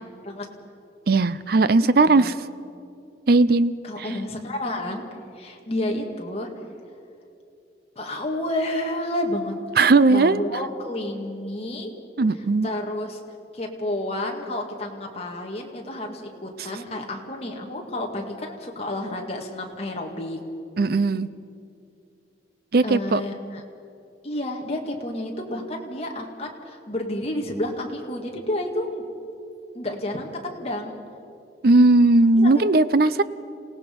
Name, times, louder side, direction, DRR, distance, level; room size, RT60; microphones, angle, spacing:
voice 1, 1.1-2.4 3.3-3.7 4.0-4.1 9.8-10.4 12.2-12.7 20.8-21.3 22.7-23.2 31.6-33.2, right 3 dB, 55° right, 15 dB, 0.6 m, -17 dB
voice 2, 3.8-5.1 5.4-6.5 8.0-9.5 10.1-11.9 12.6-13.2 13.5-20.4 22.8-23.6 24.2-29.0 29.7-31.0 32.4-32.5, left 1 dB, 35° left, 1 dB, 2.1 m, -30 dB
28.0 x 17.5 x 5.3 m, 2.6 s
head